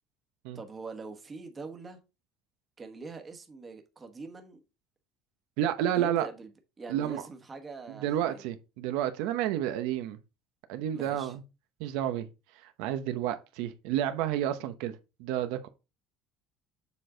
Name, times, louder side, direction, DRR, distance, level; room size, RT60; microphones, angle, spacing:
voice 1, 0.5-2.0 2.8-4.6 5.9-6.5 6.8-8.4 10.9-11.3, right 4 dB, 20° right, 1.2 m, -43 dB
voice 2, 5.6-6.3 6.9-7.2 7.9-10.2 10.7-11.4 11.8-12.3 12.6-15.7, right 11 dB, 85° right, 0.8 m, -30 dB
7.2 x 4.3 x 3.9 m
cardioid pair, 140°, 0 cm